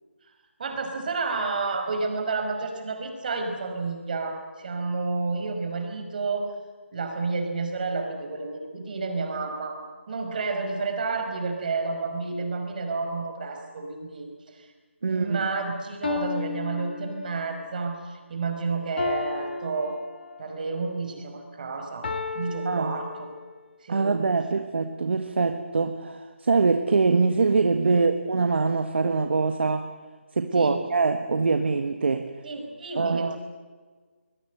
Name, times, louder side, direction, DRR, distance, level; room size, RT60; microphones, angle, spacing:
voice 1, 0.6-6.5 6.9-9.8 10.1-14.7 15.0-20.0 20.4-23.3 23.8-24.1 30.5-30.8 32.4-33.4, right 4 dB, 40° right, 5 dB, 5.3 m, -30 dB
voice 2, 15.0-15.4 22.6-23.0 23.9-29.9 30.3-32.3 32.9-33.4, right 4 dB, 60° right, 7 dB, 1.6 m, -23 dB
sound 1, 15.3-15.4 16.0-17.6 19.0-20.6 22.0-23.7, left 6 dB, 50° left, 2.3 m, -34 dB
24.0 x 21.5 x 8.0 m, 1.5 s
figure-of-eight pair, 160°, 7 cm